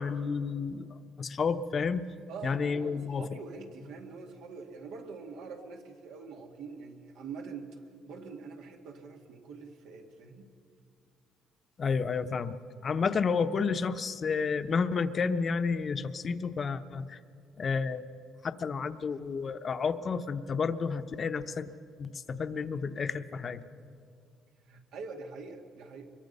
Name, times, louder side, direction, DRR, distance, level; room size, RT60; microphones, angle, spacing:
voice 1, 0.0-2.1 2.4-3.3 11.8-17.2 17.6-18.0 18.4-21.7 22.0-23.6, left 5 dB, 35° left, 10 dB, 0.9 m, -31 dB
voice 2, 2.3-10.5 24.7-26.1, right 4 dB, 85° right, 3 dB, 2.2 m, -44 dB
24.5 x 22.5 x 5.5 m, 2.3 s
cardioid pair, 120°, 0 cm